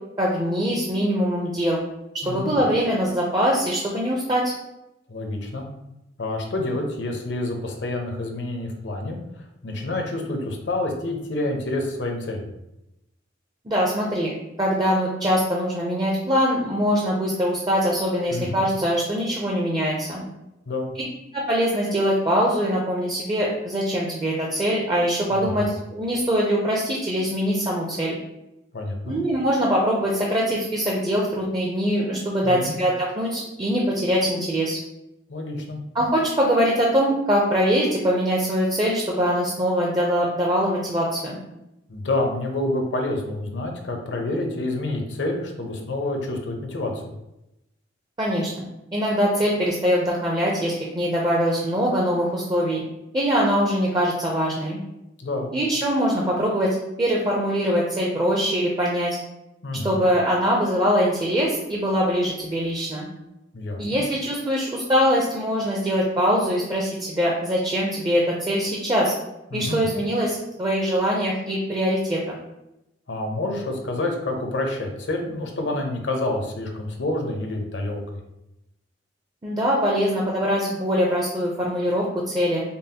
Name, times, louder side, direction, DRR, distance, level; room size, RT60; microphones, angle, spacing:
voice 1, 0.2-1.8 2.2-4.5 13.6-14.3 14.6-20.2 21.3-28.1 29.0-34.8 35.9-41.4 48.2-48.6 48.9-52.8 53.1-54.8 55.5-59.2 59.8-63.1 63.8-69.1 69.5-72.3 79.4-82.6, equal, 25° right, -3 dB, 0.5 m, -23 dB
voice 2, 2.2-2.6 5.1-5.7 6.2-12.5 18.3-18.6 20.7-20.9 25.3-25.7 28.7-29.2 32.4-32.8 35.3-35.8 41.9-47.1 55.2-55.5 59.6-60.0 63.5-64.0 69.5-69.8 73.1-78.2, left 2 dB, 70° left, 2 dB, 0.7 m, -28 dB
5.3 x 2.0 x 2.8 m, 0.89 s
head